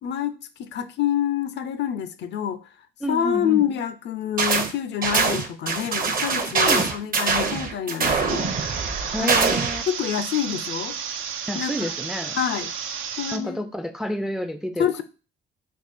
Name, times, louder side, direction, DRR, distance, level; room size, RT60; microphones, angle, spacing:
voice 1, 0.0-2.6 3.1-8.5 9.2-9.4 9.9-11.0 11.5-11.9 12.3-12.7 13.2-13.6 14.8-15.0, left 9 dB, 65° left, 0.5 m, -27 dB
voice 2, 3.0-3.8 6.7-6.9 9.1-9.9 11.5-12.4 13.3-15.0, equal, 5° right, 0.3 m, -29 dB
sound 1, 4.4-4.7 5.0-9.8, right 4 dB, 45° right, 0.7 m, -23 dB
sound 2, 8.3-13.4, right 7 dB, 85° right, 0.5 m, -32 dB
3.6 x 2.8 x 4.1 m
cardioid pair, 90°, 20 cm